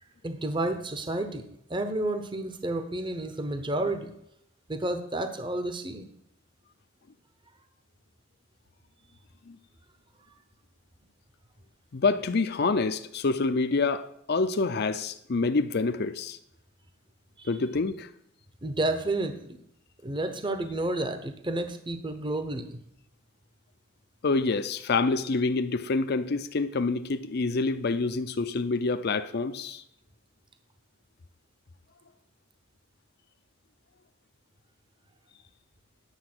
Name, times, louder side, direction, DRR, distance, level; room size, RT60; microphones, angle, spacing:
voice 1, 0.2-4.1 4.7-6.1 17.4-17.5 18.6-19.6 20.0-22.8, right 2 dB, 25° right, 0.8 m, -31 dB
voice 2, 11.9-16.4 17.5-18.1 24.2-29.8, left 3 dB, 50° left, 0.5 m, -27 dB
9.8 x 7.0 x 6.0 m
head